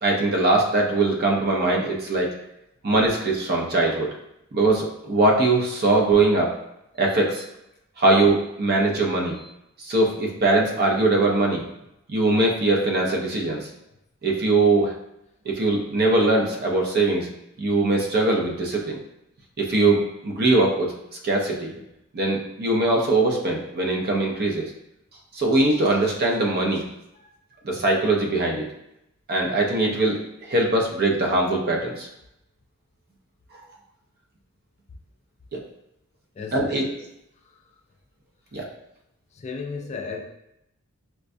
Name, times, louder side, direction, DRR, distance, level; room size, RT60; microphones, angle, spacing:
voice 1, 0.0-2.3 2.8-4.1 4.5-6.5 7.0-7.4 8.0-9.4 9.8-11.6 12.1-13.7 14.2-14.9 15.5-17.3 17.6-19.0 19.6-20.9 21.2-21.7 22.1-24.7 25.3-26.8 27.6-28.6 29.3-32.1 35.5-35.6 36.5-36.9 38.5-38.6, right 2 dB, 45° right, 0 dB, 0.6 m, -21 dB
voice 2, 36.4-36.8 39.3-40.2, left 5 dB, 30° left, 2 dB, 0.3 m, -34 dB
4.4 x 2.2 x 2.6 m, 0.83 s
head